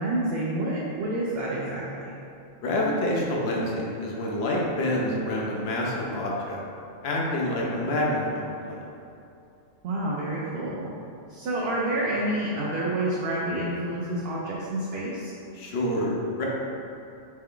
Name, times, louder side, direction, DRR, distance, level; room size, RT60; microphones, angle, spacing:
voice 1, 0.0-2.1 9.8-10.9 11.3-15.3, right 1 dB, 65° right, -5 dB, 0.7 m, -28 dB
voice 2, 2.6-6.6 7.0-8.8 15.5-16.5, left 1 dB, 60° left, -3 dB, 0.8 m, -27 dB
3.3 x 3.3 x 3.6 m, 2.7 s
omnidirectional pair, 1.4 m